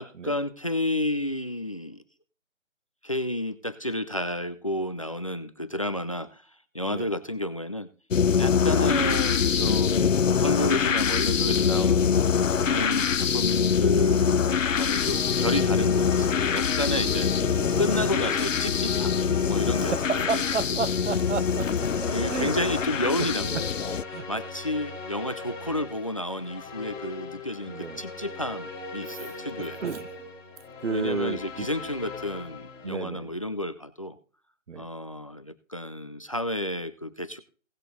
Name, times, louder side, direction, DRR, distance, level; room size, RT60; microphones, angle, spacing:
voice 1, 0.0-2.0 3.0-6.4 6.7-7.9 8.4-17.5 17.8-19.1 19.4-20.4 20.7-20.8 22.1-23.7 24.3-29.8 30.9-34.2 34.8-37.4, left 1 dB, 25° left, 0.5 m, -31 dB
sound 1, 8.1-24.0, left 7 dB, 80° left, 0.7 m, -24 dB
sound 2, 15.0-32.9, left 3 dB, 10° left, 2.2 m, -38 dB
voice 2, 19.9-22.5 23.5-23.6 24.1-24.3 27.7-28.0 29.0-29.4 29.8-30.3 30.8-31.7 32.8-33.3 34.7-34.9, right 5 dB, 65° right, 0.8 m, -32 dB
18.0 x 6.6 x 3.8 m
figure-of-eight pair, 155°, 38 cm